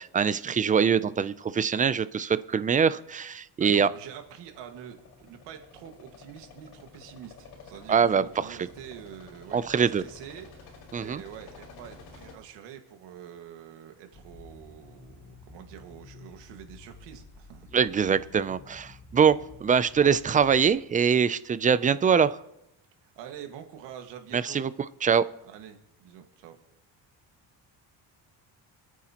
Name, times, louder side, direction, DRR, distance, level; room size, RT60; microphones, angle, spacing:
voice 1, 0.0-3.9 7.9-8.2 8.5-8.6 9.5-10.0 10.9-11.2 17.7-22.4 24.3-24.7 25.0-25.3, right 7 dB, 20° right, 16 dB, 0.3 m, -23 dB
voice 2, 3.6-17.7 23.0-24.7 25.4-26.6, right 9 dB, 90° right, 5 dB, 1.8 m, -46 dB
sound 1, 4.0-12.4, left 4 dB, 60° left, 4.8 m, -51 dB
sound 2, 14.1-20.7, left 3 dB, 25° left, 1.4 m, -51 dB
26.5 x 9.2 x 2.9 m, 0.87 s
cardioid pair, 130°, 41 cm